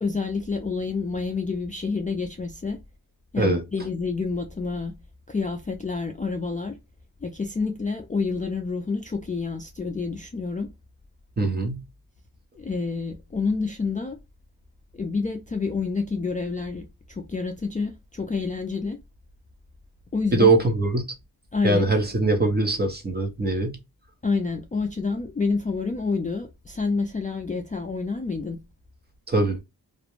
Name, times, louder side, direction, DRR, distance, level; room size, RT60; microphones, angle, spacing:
voice 1, 0.0-2.8 3.3-5.0 5.3-6.7 7.2-10.7 12.6-14.2 14.9-19.0 20.1-20.5 21.5-21.9 24.2-28.6, left 4 dB, 20° left, 0.3 m, -28 dB
voice 2, 11.4-11.8 20.3-21.0 21.6-23.8 29.3-29.6, right 3 dB, 25° right, 0.7 m, -22 dB
2.4 x 2.1 x 2.9 m
wide cardioid pair, 100°, 37 cm